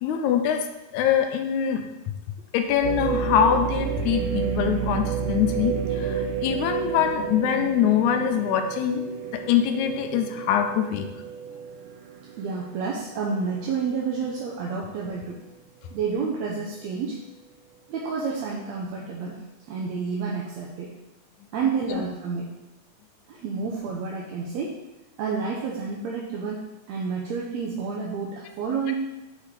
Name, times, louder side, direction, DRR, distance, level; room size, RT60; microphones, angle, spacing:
voice 1, 0.0-0.7 0.9-1.8 2.5-9.0 9.3-11.1 21.9-22.0, left 9 dB, 80° left, 6 dB, 2.0 m, -23 dB
sound 1, 2.8-12.8 13.3-13.4 14.0-14.4, right 7 dB, 90° right, 2.0 m, -30 dB
voice 2, 12.4-15.4 15.9-17.2 17.9-19.4 19.7-20.9 21.5-22.5 23.3-24.8 25.2-28.9, right 5 dB, 75° right, -3 dB, 1.9 m, -29 dB
6.9 x 4.2 x 4.7 m, 0.98 s
omnidirectional pair, 3.4 m